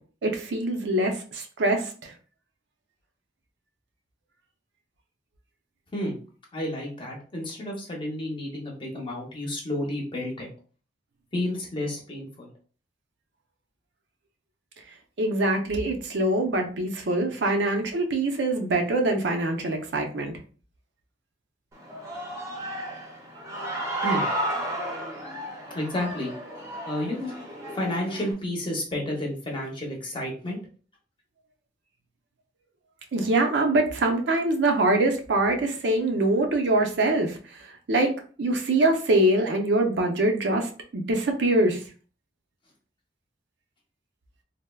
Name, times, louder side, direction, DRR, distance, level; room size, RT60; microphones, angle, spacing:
voice 1, 0.2-2.1 15.2-20.3 33.1-37.4 37.9-38.1 38.4-41.8, right 2 dB, 70° right, 4 dB, 0.5 m, -24 dB
voice 2, 6.5-10.5 11.3-12.5 24.0-24.3 25.7-26.3 26.8-27.3 27.7-30.6, left 1 dB, 30° left, -1 dB, 0.8 m, -31 dB
Human voice / Cheering, 21.7-28.3, right 1 dB, 15° right, 0.7 m, -33 dB
3.3 x 2.0 x 2.2 m, 0.39 s
head